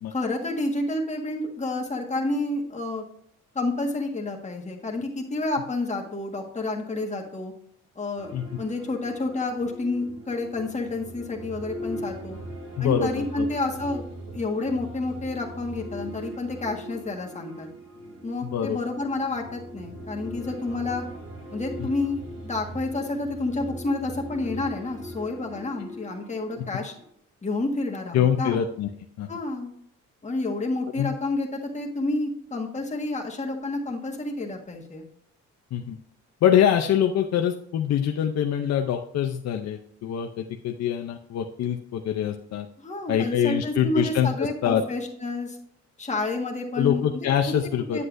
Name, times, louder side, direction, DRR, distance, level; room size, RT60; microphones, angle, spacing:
voice 1, 0.1-3.0 3.5-7.5 7.9-12.4 12.8-17.7 18.2-21.0 21.5-26.9 27.4-28.6 29.3-29.7 30.2-35.0 42.8-45.6 46.0-47.3 47.9-48.0, left 2 dB, 25° left, 1 dB, 1.6 m, -29 dB
sound 1, 8.2-27.1, right 1 dB, 45° right, 3.3 m, -40 dB
voice 2, 12.8-13.5 18.5-18.8 26.6-26.7 28.1-28.9 29.2-29.3 31.0-31.1 35.7-36.0 36.4-42.7 43.1-44.8 46.8-48.0, left 9 dB, 60° left, 4 dB, 0.6 m, -24 dB
8.1 x 7.6 x 2.6 m, 0.65 s
cardioid pair, 90°, 30 cm